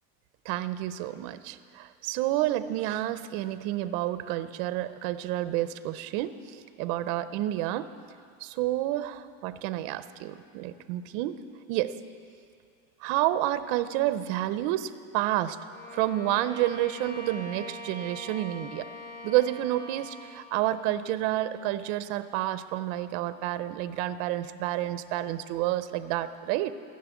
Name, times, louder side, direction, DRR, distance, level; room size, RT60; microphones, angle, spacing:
voice 1, 0.5-7.9 8.4-11.4 11.7-11.9 13.0-15.6 15.9-18.9 19.2-26.7, right 14 dB, 45° right, 13 dB, 0.5 m, -29 dB
Bowed string instrument, 15.7-20.5, left 1 dB, 25° left, 1.0 m, -42 dB
15.0 x 6.6 x 8.2 m, 2.4 s
cardioid pair, 175°, 42 cm